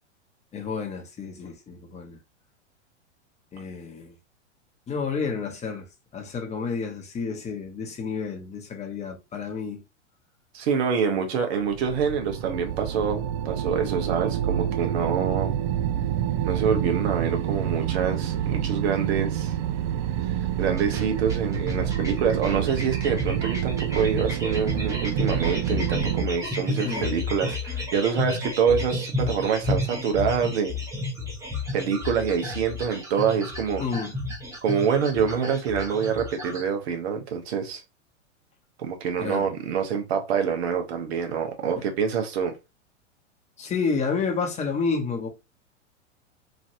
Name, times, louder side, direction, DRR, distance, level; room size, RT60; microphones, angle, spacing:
voice 1, 0.5-2.2 3.5-4.1 4.9-5.9 6.1-9.8 11.1-11.3 26.8-27.1 33.8-34.1 39.2-39.4 41.8-41.9 43.6-45.3, left 5 dB, 20° left, 0.9 m, -30 dB
voice 2, 10.5-15.5 16.4-19.5 20.6-30.8 31.7-33.8 34.6-37.8 38.8-42.6, right 6 dB, 60° right, 1.0 m, -26 dB
sound 1, 11.6-26.3, right 11 dB, 40° right, 0.4 m, -28 dB
sound 2, 20.8-36.7, left 2 dB, 10° right, 0.9 m, -32 dB
3.1 x 2.6 x 2.6 m
hypercardioid pair, 105°, 36 cm